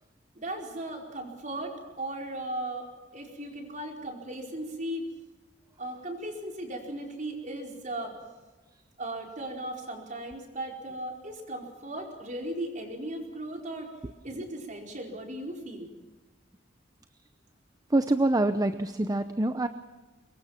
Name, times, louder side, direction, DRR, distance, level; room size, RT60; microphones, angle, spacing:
voice 1, 0.3-2.9 3.1-5.1 5.8-8.1 9.0-13.9 14.2-15.9, right 1 dB, 45° right, 2 dB, 4.7 m, -37 dB
voice 2, 17.9-19.7, right 2 dB, 20° right, 9 dB, 0.8 m, -25 dB
24.5 x 22.0 x 5.9 m, 1.2 s
head